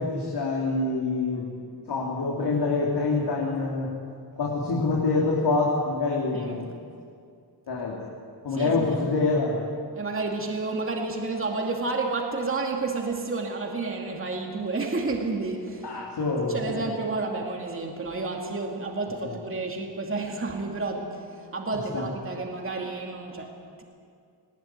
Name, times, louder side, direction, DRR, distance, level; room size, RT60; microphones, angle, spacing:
voice 1, 0.0-1.6 1.9-3.9 4.4-6.6 7.7-8.0 8.4-9.6 15.8-16.8 21.9-22.0, left 3 dB, 70° left, -3 dB, 3.4 m, -26 dB
voice 2, 8.5-8.9 9.9-16.0 16.5-23.8, right 3 dB, 30° right, 1 dB, 2.5 m, -30 dB
20.0 x 19.0 x 9.2 m, 2.3 s
wide cardioid pair, 150°, 41 cm